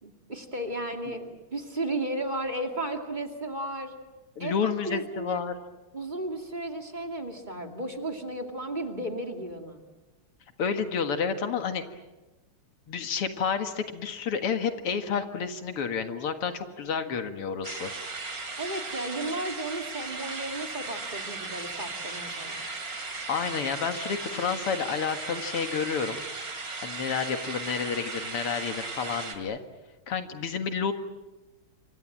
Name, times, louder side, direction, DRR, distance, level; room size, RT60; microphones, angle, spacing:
voice 1, 0.0-4.0 4.4-5.4 5.9-9.8 18.6-22.6, right 1 dB, 20° right, 4 dB, 2.5 m, -34 dB
voice 2, 4.4-5.6 10.6-11.8 12.9-17.9 23.3-26.2 26.8-29.6 30.1-30.9, left 6 dB, 85° left, 8 dB, 2.7 m, -30 dB
sound 1, 17.6-29.4, right 3 dB, 40° right, 3.3 m, -37 dB
28.0 x 25.0 x 7.5 m, 1.1 s
omnidirectional pair, 2.4 m